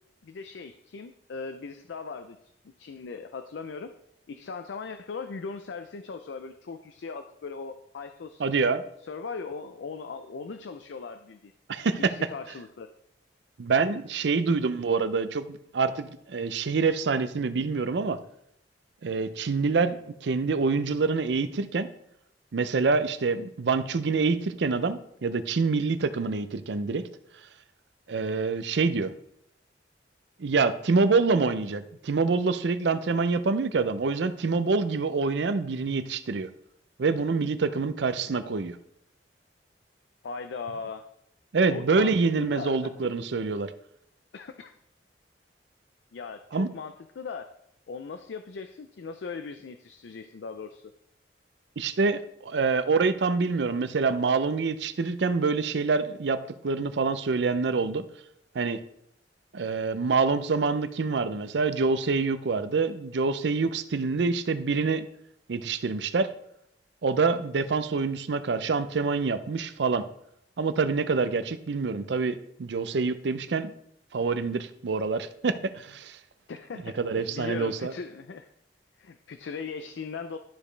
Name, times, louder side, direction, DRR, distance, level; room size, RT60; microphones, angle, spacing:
voice 1, 0.2-2.4 2.8-4.0 4.3-8.5 9.0-11.5 12.1-12.9 40.2-41.1 41.6-42.9 44.3-44.7 46.1-47.5 47.9-50.9 76.5-78.5 79.0-80.4, left 4 dB, 80° left, 8 dB, 0.4 m, -39 dB
voice 2, 8.4-8.8 11.7-12.1 13.6-15.5 15.7-18.2 19.0-21.9 22.5-27.0 28.1-29.1 30.4-36.5 37.0-38.8 41.5-43.7 46.5-46.7 51.8-58.0 58.5-58.8 59.5-65.0 65.5-66.3 67.0-70.1 70.6-73.7 74.1-76.2 77.0-77.9, right 4 dB, 75° right, 12 dB, 0.5 m, -26 dB
12.0 x 5.0 x 3.3 m, 0.75 s
head